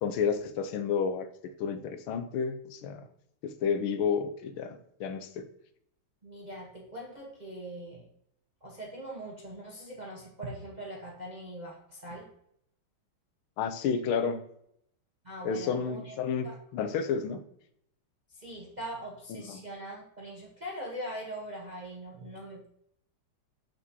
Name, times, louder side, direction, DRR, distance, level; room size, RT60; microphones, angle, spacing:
voice 1, 0.0-1.3 1.6-3.1 3.4-5.5 13.6-14.4 15.4-16.5 16.7-17.4 19.3-19.4, left 6 dB, 85° left, 9 dB, 1.5 m, -31 dB
voice 2, 6.2-8.1 8.6-12.3 15.2-16.2 16.4-16.6 18.3-22.7, right 1 dB, 35° right, -3 dB, 0.7 m, -42 dB
6.6 x 6.1 x 2.7 m, 0.73 s
omnidirectional pair, 2.3 m